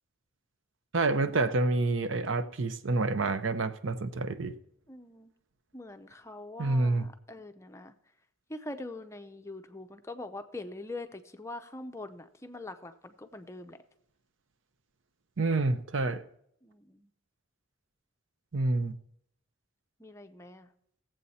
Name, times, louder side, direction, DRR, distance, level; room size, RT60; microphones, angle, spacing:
voice 1, 0.9-4.5 6.6-7.0 15.4-16.2 18.5-18.9, right 3 dB, 75° right, 0.7 m, -28 dB
voice 2, 4.9-5.3 5.7-7.9 8.5-13.8 16.6-17.1 20.0-20.7, left 2 dB, 15° left, 0.6 m, -43 dB
17.0 x 7.7 x 4.2 m
head